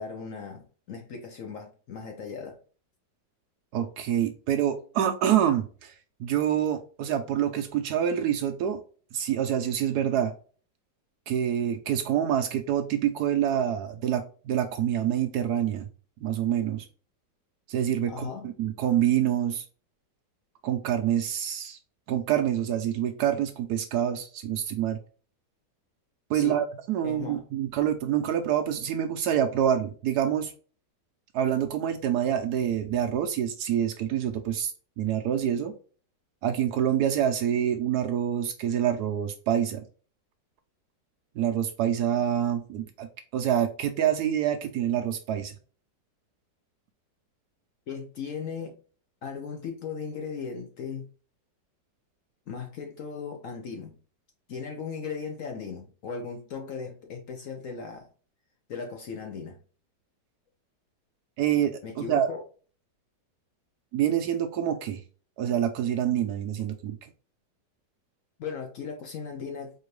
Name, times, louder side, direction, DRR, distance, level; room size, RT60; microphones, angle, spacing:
voice 1, 0.0-2.6 18.1-18.5 26.3-26.6 27.0-27.4 47.9-48.7 49.2-51.1 52.5-53.9 54.5-58.1 58.7-59.6 61.8-62.4 68.4-69.7, left 5 dB, 60° left, 0.9 m, -37 dB
voice 2, 3.7-5.9 6.2-8.8 9.1-10.3 11.3-15.9 16.2-16.9 17.7-19.6 20.6-21.8 22.1-25.0 26.3-30.5 31.3-35.7 36.4-39.8 41.4-45.5 61.4-62.3 63.9-65.0 65.4-67.0, right 10 dB, 70° right, 1.0 m, -26 dB
4.3 x 2.7 x 3.1 m
omnidirectional pair, 1.9 m